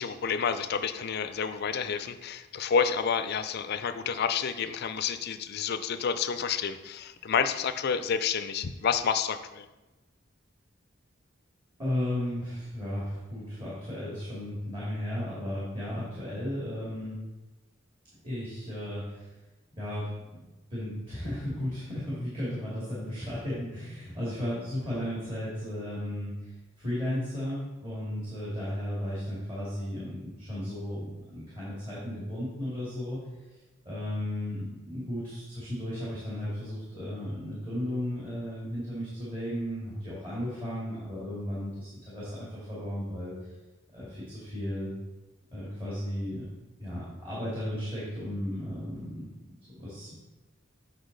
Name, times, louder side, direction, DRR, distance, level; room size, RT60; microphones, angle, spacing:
voice 1, 0.0-9.7, left 6 dB, 55° left, 11 dB, 0.4 m, -29 dB
voice 2, 11.8-17.2 18.2-19.3 19.8-20.4 20.7-26.5 26.8-33.6 33.9-43.5 43.9-44.9 45.5-46.5 46.8-49.2 49.6-50.1, left 1 dB, 25° right, -8 dB, 2.1 m, -35 dB
8.2 x 5.3 x 3.9 m, 1.1 s
head